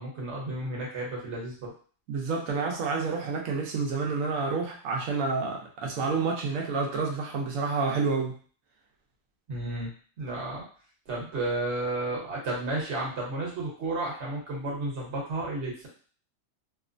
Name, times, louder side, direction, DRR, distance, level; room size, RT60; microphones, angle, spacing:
voice 1, 0.0-1.7 9.5-9.9 10.2-10.6 11.1-15.9, right 2 dB, 60° right, -4 dB, 1.3 m, -32 dB
voice 2, 2.1-8.4, right 4 dB, 90° right, 0 dB, 1.1 m, -29 dB
3.0 x 2.1 x 2.5 m, 0.43 s
omnidirectional pair, 1.4 m